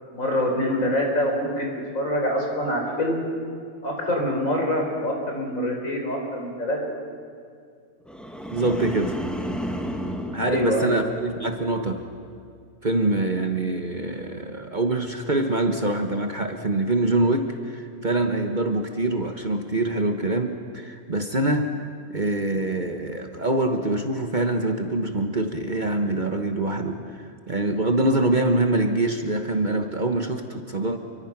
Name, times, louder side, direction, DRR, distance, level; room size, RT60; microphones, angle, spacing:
voice 1, 0.1-3.2 3.8-6.8 10.4-11.0, left 1 dB, 65° left, 1 dB, 4.6 m, -25 dB
sound 1, 8.1-11.5 11.9-12.3, equal, ahead, 1.6 m, -33 dB
voice 2, 8.5-9.2 10.3-12.0 12.8-21.7 22.1-31.0, right 2 dB, 35° right, 5 dB, 1.3 m, -24 dB
28.0 x 23.5 x 6.0 m, 2.3 s
omnidirectional pair, 1.5 m